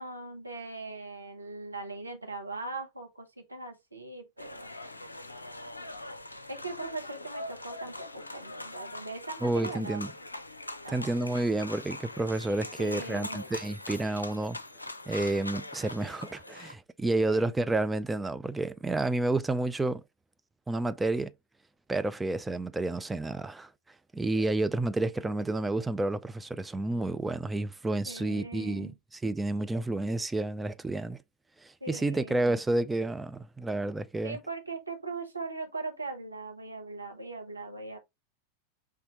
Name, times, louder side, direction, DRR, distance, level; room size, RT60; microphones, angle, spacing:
voice 1, 0.0-4.7 5.8-5.9 6.5-10.0 10.8-11.3 12.8-13.4 17.0-17.5 28.1-28.9 31.8-32.4 34.2-38.0, right 3 dB, 85° right, 1.2 m, -40 dB
sound 1, 4.4-16.7, left 1 dB, 80° left, 0.6 m, -42 dB
voice 2, 9.4-10.1 10.9-14.6 15.1-20.0 20.7-21.3 21.9-23.7 24.1-28.9 29.2-31.2 31.9-34.4, right 2 dB, 10° right, 0.4 m, -30 dB
5.5 x 3.2 x 3.0 m
figure-of-eight pair, 90°, 0 cm